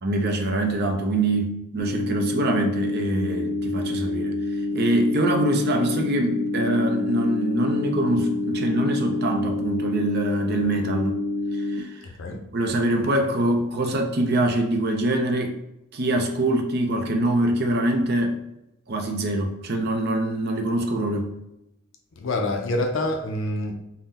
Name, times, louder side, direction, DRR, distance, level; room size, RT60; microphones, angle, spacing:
voice 1, 0.0-4.4 4.7-11.2 11.5-12.0 12.5-15.6 15.9-18.4 18.9-21.3, right 1 dB, 45° right, 0.5 m, -24 dB
sound 1, 1.8-11.8, left 2 dB, 15° left, 1.2 m, -27 dB
voice 2, 22.2-23.7, left 1 dB, 60° left, 0.5 m, -26 dB
3.7 x 2.1 x 4.0 m
head